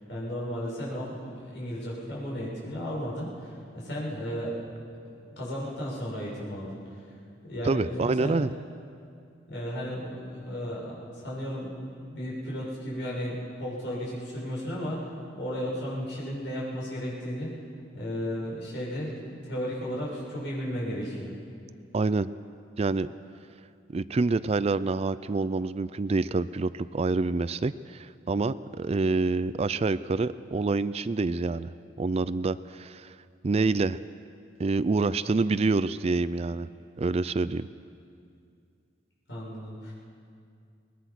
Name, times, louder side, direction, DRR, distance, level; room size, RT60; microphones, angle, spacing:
voice 1, 0.1-4.5 4.9-6.8 7.4-8.4 9.5-17.5 17.9-21.3 39.3-39.9, equal, 75° left, -5 dB, 7.0 m, -34 dB
voice 2, 7.6-8.5 21.9-22.3 22.8-23.1 23.9-31.7 32.0-33.1 33.4-34.0 34.6-36.7 37.0-37.7, right 3 dB, 35° right, 16 dB, 0.4 m, -27 dB
22.5 x 20.0 x 6.0 m, 2.4 s
head